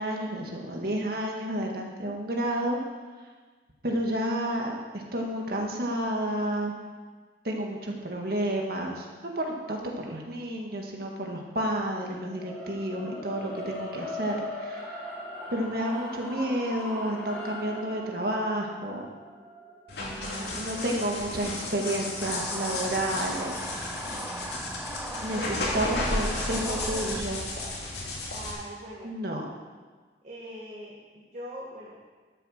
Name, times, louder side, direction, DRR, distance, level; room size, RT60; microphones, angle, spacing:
voice 1, 0.0-2.8 3.2-3.3 3.8-6.7 7.4-15.2 15.5-19.0 20.0-24.2 25.2-27.4 29.0-29.5, right 1 dB, 55° right, 0 dB, 1.8 m, -31 dB
sound 1, 12.3-22.5, left 1 dB, 10° left, 2.4 m, -40 dB
sound 2, 19.9-28.5, left 2 dB, 70° left, 2.6 m, -33 dB
voice 2, 20.0-21.1 25.1-26.4 26.9-27.5 28.3-29.1 30.2-32.0, equal, 40° right, -5 dB, 1.7 m, -42 dB
sound 3, 22.2-27.2, right 2 dB, 10° right, 0.4 m, -39 dB
12.5 x 6.8 x 6.5 m, 1.4 s
head